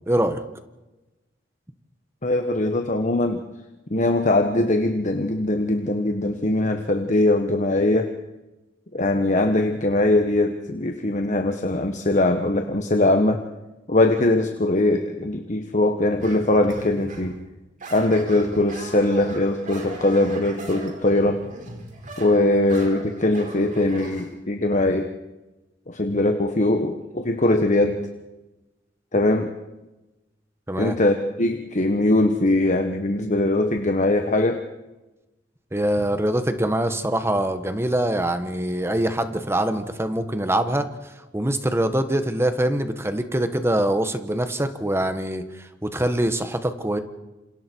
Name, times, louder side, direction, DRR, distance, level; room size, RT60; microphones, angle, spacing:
voice 1, 0.1-0.4 30.7-31.0 35.7-40.9 41.3-47.0, right 1 dB, 15° right, 9 dB, 1.5 m, -24 dB
voice 2, 2.2-3.4 3.9-8.1 8.9-13.4 13.9-17.4 17.9-21.4 22.2-25.1 25.9-28.0 29.1-29.5 30.8-34.6, left 2 dB, 45° left, 5 dB, 1.4 m, -21 dB
sound 1, 16.2-17.4 17.8-24.3, right 2 dB, 45° right, 5.1 m, -39 dB
28.5 x 27.0 x 4.6 m, 1.1 s
head